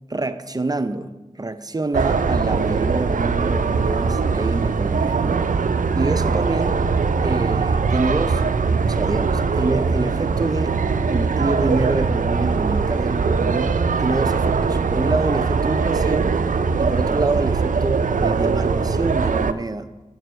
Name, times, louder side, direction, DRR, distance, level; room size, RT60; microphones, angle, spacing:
voice 1, 0.1-5.6 5.9-6.8 7.2-8.5 8.9-10.8 11.1-16.4 16.8-19.9, right 2 dB, 30° right, 11 dB, 0.5 m, -26 dB
sound 1, 1.9-19.5, right 5 dB, 85° right, 0.4 m, -21 dB
sound 2, 3.5-12.1, right 1 dB, 85° left, 3.7 m, -42 dB
9.3 x 5.5 x 6.3 m, 1.1 s
wide cardioid pair, 60°, 13 cm